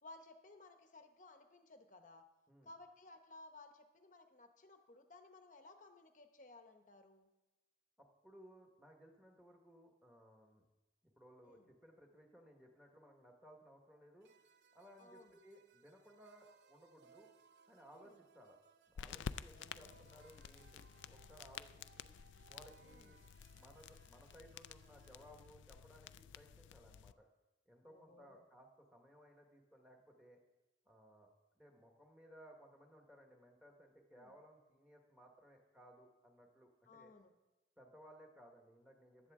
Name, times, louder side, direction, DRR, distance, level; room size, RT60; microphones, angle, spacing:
voice 1, 0.0-2.2 2.6-7.3 11.4-11.7 15.0-15.4 17.9-18.2 19.7-19.9 22.8-23.1 27.8-28.4 34.1-34.3 36.9-37.3, left 2 dB, 45° left, 6 dB, 0.9 m, -59 dB
voice 2, 8.0-10.6 11.0-14.3 14.7-17.3 17.7-18.6 18.9-22.1 22.5-23.2 23.5-27.3 27.7-30.4 30.8-31.3 31.5-37.1 37.8-39.3, equal, 5° right, 1 dB, 1.5 m, -61 dB
sound 1, 14.2-25.5, right 6 dB, 60° right, 0.6 m, -68 dB
sound 2, 19.0-27.1, left 7 dB, 80° left, 0.3 m, -51 dB
15.0 x 11.0 x 3.7 m, 1.1 s
head